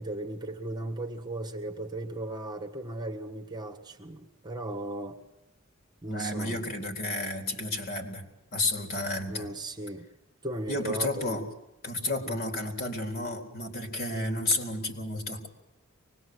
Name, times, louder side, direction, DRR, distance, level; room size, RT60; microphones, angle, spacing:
voice 1, 0.0-5.2 6.0-6.6 9.3-10.1 10.4-11.4 12.2-12.4 14.1-14.4, right 2 dB, 20° right, 2 dB, 1.7 m, -36 dB
voice 2, 6.1-8.3 8.5-9.5 10.7-11.4 11.8-15.5, left 2 dB, 45° left, 4 dB, 4.2 m, -32 dB
24.5 x 21.0 x 8.0 m, 0.95 s
head